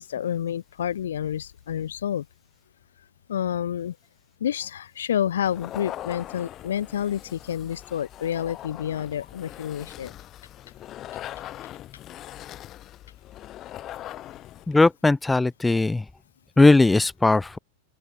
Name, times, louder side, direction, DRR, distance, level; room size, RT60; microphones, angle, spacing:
voice 1, 0.0-2.3 3.3-4.0 4.4-10.1, left 10 dB, 65° left, 1.2 m, -29 dB
sound 1, 5.4-14.8, left 13 dB, 30° left, 7.7 m, -41 dB
voice 2, 14.7-16.0 16.6-17.6, left 3 dB, 10° left, 0.5 m, -18 dB
open air
figure-of-eight pair, 90°, 0 cm